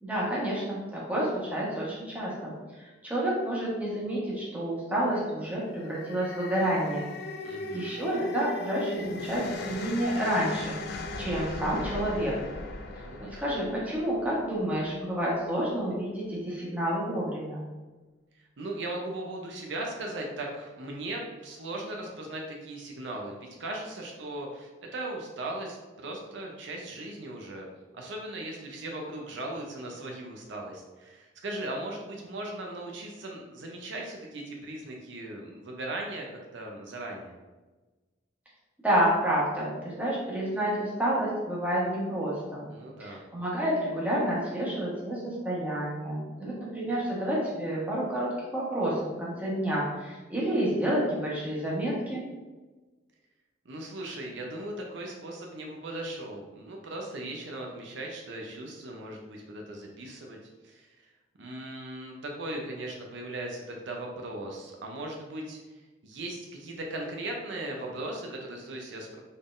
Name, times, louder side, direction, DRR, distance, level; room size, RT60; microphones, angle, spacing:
voice 1, 0.0-2.5 2.8-7.1 7.7-10.7 11.2-12.3 13.4-17.6 38.8-42.7 43.0-52.2, right 1 dB, 10° right, -6 dB, 1.1 m, -29 dB
sound 1, 5.6-14.9, left 2 dB, 60° left, 0.5 m, -38 dB
voice 2, 7.4-8.0 13.0-13.4 18.6-27.7 27.9-37.4 42.7-43.2 53.7-60.4 60.6-60.9 61.4-65.6 66.0-69.2, right 1 dB, 70° right, 0 dB, 0.6 m, -38 dB
4.0 x 3.6 x 2.5 m, 1.2 s
head